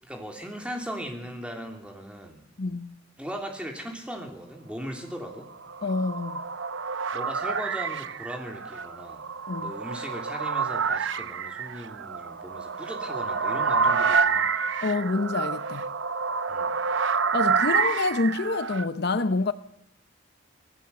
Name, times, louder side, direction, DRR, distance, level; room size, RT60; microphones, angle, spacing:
voice 1, 0.0-2.4 3.2-5.5 7.1-9.2 9.6-14.6 16.5-16.8, equal, 5° right, 3.0 m, -38 dB
voice 2, 2.6-3.0 5.8-6.4 9.5-9.7 14.8-15.9 17.3-19.5, left 3 dB, 55° left, 0.8 m, -27 dB
sound 1, 5.4-18.9, right 5 dB, 70° right, 0.8 m, -28 dB
25.5 x 17.5 x 6.9 m
head